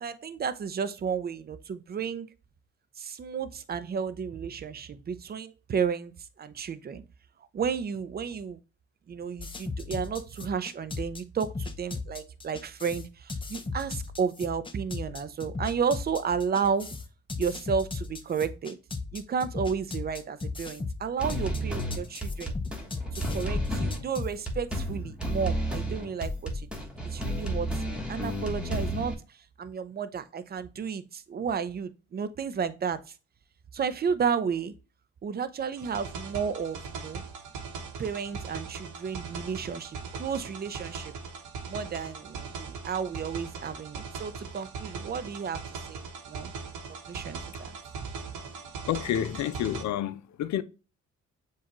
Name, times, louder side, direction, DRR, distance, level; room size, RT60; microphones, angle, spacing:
voice 1, 0.0-2.3 3.0-6.1 6.4-7.0 7.5-8.6 9.1-16.9 17.4-18.8 19.1-22.6 23.1-33.2 33.7-34.7 35.2-37.2 38.0-41.1 41.7-45.6 45.9-46.5 47.1-47.7 48.0-48.1, right 6 dB, 35° right, 0.5 m, -32 dB
sound 1, 9.4-24.3, left 3 dB, 15° left, 0.6 m, -36 dB
sound 2, 21.2-29.1, equal, 5° right, 1.2 m, -32 dB
sound 3, 35.8-49.8, right 4 dB, 85° right, 1.1 m, -40 dB
voice 2, 48.9-50.6, left 11 dB, 65° left, 0.5 m, -29 dB
7.1 x 2.4 x 3.0 m
cardioid pair, 90°, 30 cm